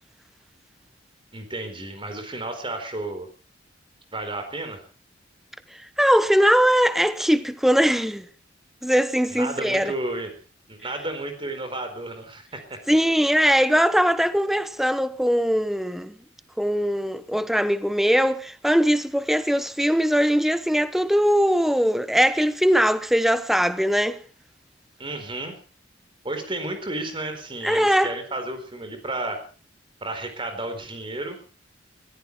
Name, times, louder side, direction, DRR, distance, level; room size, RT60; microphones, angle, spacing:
voice 1, 1.3-3.3 4.1-4.8 9.3-10.3 10.7-12.8 25.0-25.6 26.2-29.4 30.0-31.4, right 2 dB, 30° right, 4.3 m, -32 dB
voice 2, 6.0-8.3 8.8-9.9 12.9-16.1 16.6-24.2 27.6-28.1, equal, ahead, 0.9 m, -21 dB
20.0 x 15.5 x 4.6 m
head